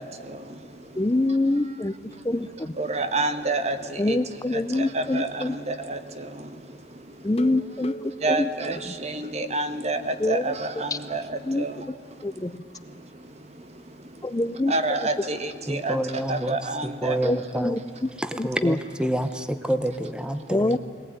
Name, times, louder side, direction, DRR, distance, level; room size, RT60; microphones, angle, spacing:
voice 1, 0.0-1.0 2.8-4.2 4.5-7.3 8.2-11.9 12.4-12.5 12.8-14.3 14.7-17.2, right 2 dB, 40° right, 9 dB, 1.4 m, -30 dB
voice 2, 0.9-1.9 2.2-2.8 4.0-5.6 7.2-8.5 8.8-8.9 10.2-10.6 10.9-11.0 11.4-11.6 12.2-12.6 14.2-14.7 17.2-17.8 18.3-18.8 20.5-20.8, left 2 dB, 20° left, 12 dB, 0.5 m, -25 dB
sound 1, 7.3-9.8 10.2-10.3 10.6-10.7 11.1-11.2, right 1 dB, 35° left, 0.9 m, -40 dB
voice 3, 15.7-16.6 16.8-17.8 18.2-20.8, right 1 dB, 5° right, 10 dB, 0.8 m, -28 dB
22.0 x 18.5 x 9.5 m, 2.4 s
head